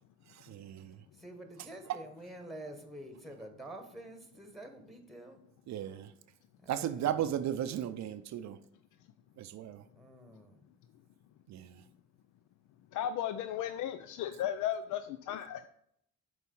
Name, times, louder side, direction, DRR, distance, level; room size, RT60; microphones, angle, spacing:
voice 1, 0.5-0.9 1.9-2.0 5.7-6.1 6.7-8.6 9.4-9.8 11.5-11.6, right 10 dB, 65° right, 11 dB, 0.5 m, -35 dB
voice 2, 1.2-5.4 6.6-8.0 10.0-10.6, right 1 dB, ahead, 5 dB, 1.3 m, -48 dB
voice 3, 12.9-15.7, left 10 dB, 75° left, 11 dB, 0.5 m, -35 dB
6.4 x 4.2 x 5.4 m, 0.71 s
cardioid pair, 90°, 30 cm